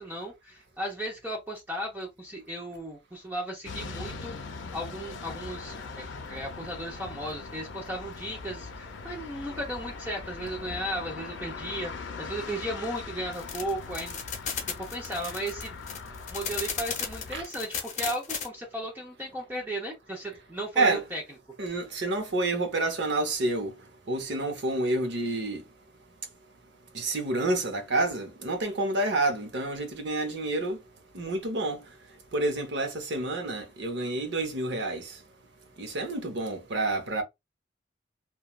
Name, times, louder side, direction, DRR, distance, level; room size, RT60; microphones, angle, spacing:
voice 1, 0.0-4.4 4.7-14.2 14.8-15.7 16.3-21.2 21.6-21.7, right 1 dB, 10° right, 0.6 m, -35 dB
sound 1, 3.6-17.4, left 4 dB, 80° left, 0.6 m, -41 dB
sound 2, 13.3-18.5, left 6 dB, 40° left, 0.8 m, -34 dB
voice 2, 21.6-23.7 24.1-25.6 26.9-30.8 31.1-31.8 32.3-35.0 35.8-37.2, right 2 dB, 65° right, 0.7 m, -28 dB
3.0 x 2.2 x 2.2 m
head